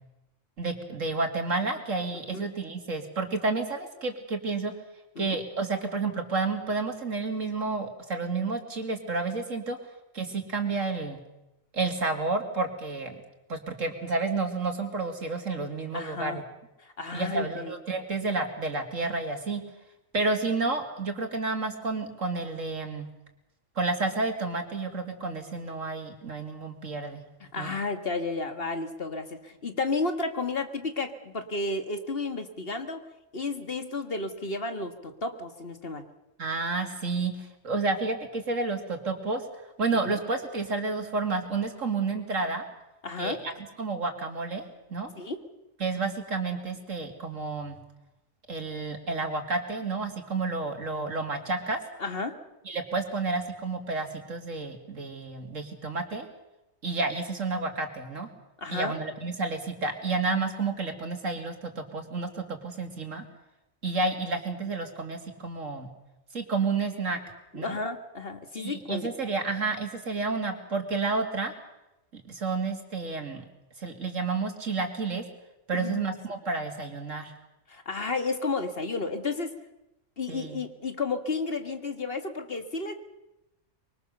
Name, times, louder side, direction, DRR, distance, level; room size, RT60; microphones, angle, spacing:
voice 1, 0.6-4.7 5.2-9.8 10.1-11.2 11.7-13.2 13.5-16.4 17.1-19.6 20.1-23.1 23.8-27.2 27.6-27.7 36.4-39.4 39.8-42.6 43.2-43.5 43.8-44.6 44.9-45.1 45.8-47.8 48.5-51.8 52.7-56.3 56.8-58.3 58.7-63.2 63.8-65.9 66.3-67.2 67.5-67.8 68.5-71.5 72.1-73.4 73.8-75.2 75.7-77.3 80.3-80.6, right 3 dB, 85° right, 5 dB, 3.1 m, -30 dB
voice 2, 15.9-16.4 16.8-17.7 27.4-33.1 33.3-36.0 40.0-40.2 43.0-43.4 45.2-45.4 52.0-52.4 58.6-58.9 67.5-69.1 75.7-76.1 77.7-79.5 80.2-82.9, left 3 dB, 50° left, 7 dB, 2.0 m, -32 dB
24.5 x 24.0 x 6.9 m, 0.93 s
omnidirectional pair, 1.3 m